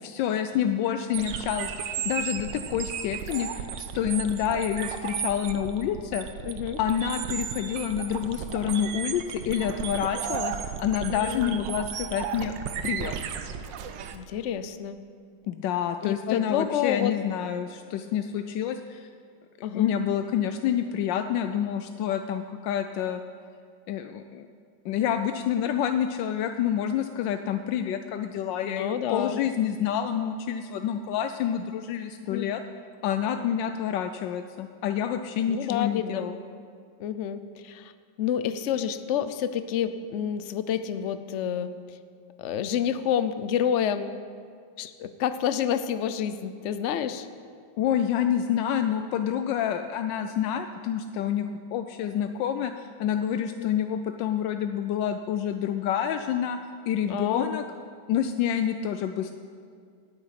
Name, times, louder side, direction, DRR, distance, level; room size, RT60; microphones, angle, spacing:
voice 1, 0.0-6.3 6.8-12.5 12.8-13.1 15.5-19.1 19.7-23.2 23.9-24.5 24.8-32.6 33.0-36.4 47.8-56.6 56.9-57.6 58.1-59.3, left 9 dB, 85° left, 8 dB, 1.3 m, -28 dB
sound 1, 1.1-14.2, right 8 dB, 85° right, 1.5 m, -34 dB
voice 2, 6.4-6.8 11.1-11.7 14.1-15.0 16.0-17.2 19.6-19.9 28.6-29.4 32.3-32.5 35.5-36.3 37.0-37.9 38.2-41.7 42.4-44.1 44.8-47.3 53.5-53.7 57.1-57.6, left 9 dB, 65° left, 12 dB, 0.7 m, -29 dB
18.0 x 9.1 x 5.8 m, 2.2 s
omnidirectional pair, 1.9 m